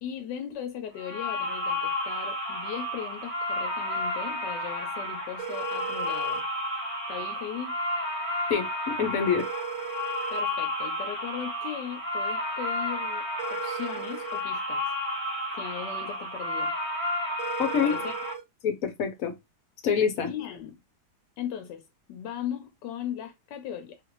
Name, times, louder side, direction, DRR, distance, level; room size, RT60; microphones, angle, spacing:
voice 1, 0.0-6.4 7.1-7.8 10.3-13.2 13.5-14.9 15.5-16.7 17.7-18.2 20.2-20.8 21.4-21.8 22.1-24.0, left 9 dB, 80° left, 1.2 m, -38 dB
sound 1, 1.0-18.3, left 1 dB, 25° right, 0.8 m, -32 dB
sound 2, 5.4-6.4 9.4-10.4 13.4-14.4 17.4-18.4, right 8 dB, 60° right, 1.2 m, -37 dB
voice 2, 8.5-9.5 17.6-18.0 18.6-19.3 19.8-20.3, left 7 dB, 60° left, 1.0 m, -26 dB
3.2 x 2.5 x 3.0 m
omnidirectional pair, 1.9 m